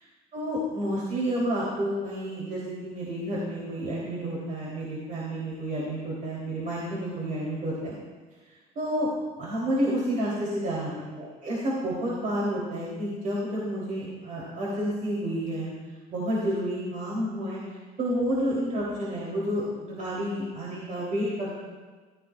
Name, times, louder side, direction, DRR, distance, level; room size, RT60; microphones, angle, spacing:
voice 1, 0.3-7.9 8.8-9.1 9.4-10.9 11.2-15.7 16.1-21.5, equal, 50° right, -6 dB, 3.5 m, -30 dB
15.0 x 14.5 x 2.5 m, 1.4 s
cardioid pair, 110°, 17 cm